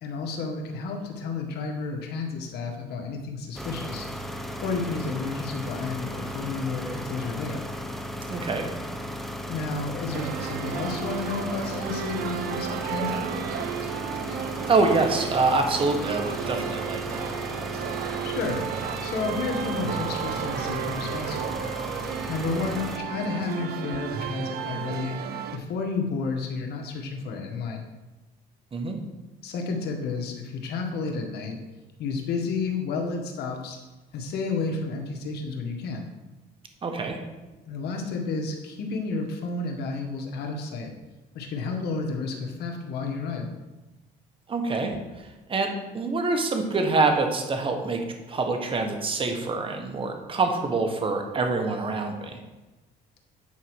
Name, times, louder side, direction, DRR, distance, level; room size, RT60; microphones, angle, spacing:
voice 1, 0.0-4.1 4.6-7.6 9.5-13.2 18.2-18.6 19.0-21.6 22.3-25.1 25.5-27.8 29.4-31.6 32.0-33.8 34.1-36.0 37.7-40.9 41.3-43.5, left 4 dB, 75° left, 2 dB, 1.7 m, -31 dB
sound 1, 3.6-23.0, equal, ahead, 0.8 m, -35 dB
voice 2, 8.3-8.7 14.7-17.3 28.7-29.0 36.8-37.2 44.5-45.0 45.5-52.4, right 3 dB, 30° right, 4 dB, 1.4 m, -25 dB
sound 2, 10.1-25.6, right 9 dB, 70° right, 0.7 m, -33 dB
9.4 x 4.5 x 6.3 m, 1.1 s
cardioid pair, 110°, 17 cm